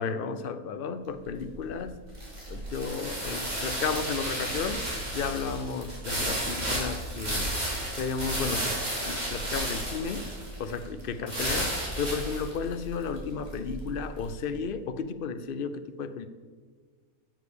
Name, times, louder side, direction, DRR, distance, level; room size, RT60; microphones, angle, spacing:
voice 1, 0.0-2.0 2.5-4.9 5.1-7.6 8.0-8.7 9.0-10.3 10.6-16.3, left 5 dB, 50° left, 11 dB, 0.7 m, -33 dB
sound 1, 1.2-14.4, right 1 dB, 30° right, 3.3 m, -33 dB
11.0 x 7.1 x 7.0 m, 1.6 s
omnidirectional pair, 1.5 m